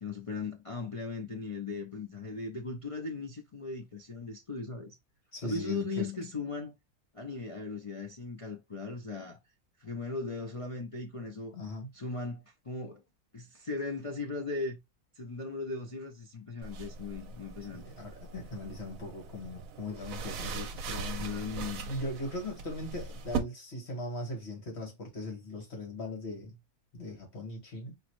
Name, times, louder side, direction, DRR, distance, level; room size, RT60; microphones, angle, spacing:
voice 1, 0.0-4.9 5.4-6.8 7.1-9.4 9.8-11.5 11.9-13.0 13.3-14.8 15.1-17.8 21.2-21.9, left 3 dB, 65° left, 0.3 m, -38 dB
voice 2, 5.3-6.1 11.5-11.9 17.7-21.3 21.9-26.5 26.9-28.0, left 1 dB, 45° left, 1.9 m, -39 dB
sound 1, 16.6-23.4, right 5 dB, 70° right, 1.0 m, -40 dB
5.1 x 3.0 x 3.1 m
omnidirectional pair, 1.6 m